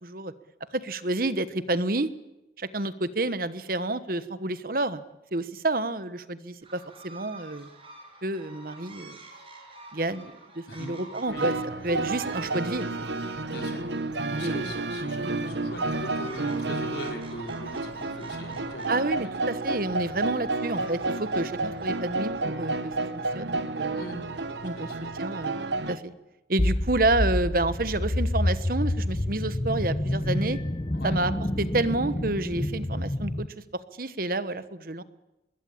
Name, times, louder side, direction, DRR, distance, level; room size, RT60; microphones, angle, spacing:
voice 1, 0.0-0.3 0.7-2.1 2.6-5.0 5.3-7.7 8.2-9.2 9.9-11.5 11.8-12.9 14.4-14.7 18.9-22.9 23.3-24.0 24.6-24.9 25.2-26.1 26.5-30.6 31.0-31.3 31.6-33.5 34.0-35.0, right 2 dB, 50° right, 13 dB, 1.3 m, -29 dB
sound 1, 6.6-22.2, right 2 dB, 30° right, 6.7 m, -50 dB
voice 2, 10.7-11.0 11.3-11.5 13.5-13.8 14.3-18.9 23.9-24.2 24.7-25.1 30.9-31.2, left 1 dB, 65° left, 3 dB, 5.2 m, -40 dB
sound 2, 11.3-26.0, right 3 dB, 75° right, 1.4 m, -31 dB
sound 3, 26.6-33.5, left 1 dB, 25° left, 0.8 m, -28 dB
25.0 x 21.5 x 8.8 m, 0.96 s
head